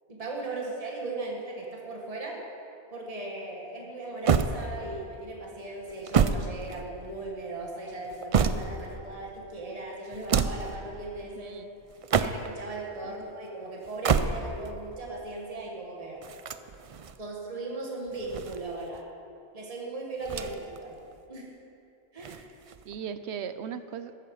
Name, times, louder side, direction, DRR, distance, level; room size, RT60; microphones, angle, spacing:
voice 1, 0.1-2.4 2.9-11.6 12.2-16.2 17.2-19.1 19.5-21.0 21.3-21.6 22.1-22.5, right 2 dB, 30° right, -2 dB, 1.8 m, -38 dB
sound 1, 4.3-5.1 5.9-7.2 7.9-9.0 10.1-10.8 11.9-12.7 13.8-14.7 16.2-17.2 18.1-19.0 20.2-20.8 21.1-21.2 22.2-23.0, right 6 dB, 55° right, 0.4 m, -28 dB
voice 2, 11.4-11.7 13.0-13.2 22.8-24.2, right 7 dB, 75° right, 11 dB, 0.9 m, -38 dB
13.5 x 13.0 x 4.8 m, 2.7 s
omnidirectional pair, 1.2 m